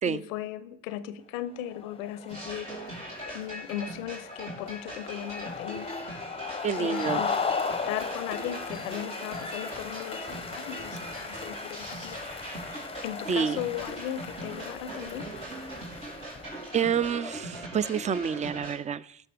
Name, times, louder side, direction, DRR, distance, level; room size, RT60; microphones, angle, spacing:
voice 1, 0.0-2.8 3.2-5.9 6.7-7.3 7.9-12.2 13.0-15.3, left 11 dB, 85° left, 14 dB, 0.7 m, -37 dB
sound 1, 1.6-17.3, left 5 dB, 15° left, 0.6 m, -37 dB
sound 2, 2.3-18.8, right 1 dB, 85° right, 3.0 m, -41 dB
voice 2, 6.6-7.2 13.3-13.6 16.7-19.2, right 7 dB, 20° right, 19 dB, 0.3 m, -28 dB
17.5 x 6.0 x 3.4 m, 0.66 s
hypercardioid pair, 55°, 39 cm